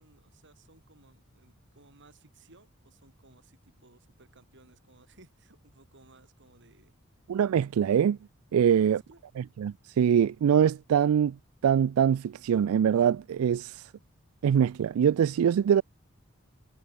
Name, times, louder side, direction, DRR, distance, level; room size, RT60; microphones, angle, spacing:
voice 1, 0.0-6.9 8.6-9.2, right 2 dB, 60° right, 4.8 m, -59 dB
voice 2, 7.3-8.2 8.5-9.0 9.4-11.4 11.6-13.9 14.4-15.8, right 8 dB, 80° right, 0.3 m, -23 dB
head